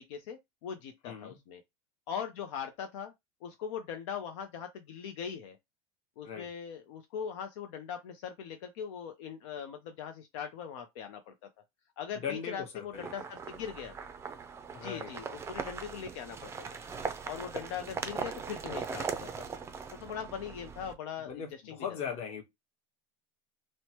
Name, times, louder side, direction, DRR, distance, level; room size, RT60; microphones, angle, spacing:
voice 1, 0.0-1.6 2.1-3.1 3.4-5.6 6.2-11.3 12.0-14.0 14.8-16.5 17.3-19.3 19.9-21.8, left 7 dB, 75° left, 0.5 m, -40 dB
voice 2, 1.0-1.4 6.2-6.5 12.1-13.1 14.7-15.1 21.2-22.4, left 7 dB, 40° left, 1.1 m, -39 dB
sound 1, 12.9-20.9, right 5 dB, 15° right, 0.4 m, -40 dB
3.0 x 2.1 x 2.9 m
supercardioid pair, 125°, 16 cm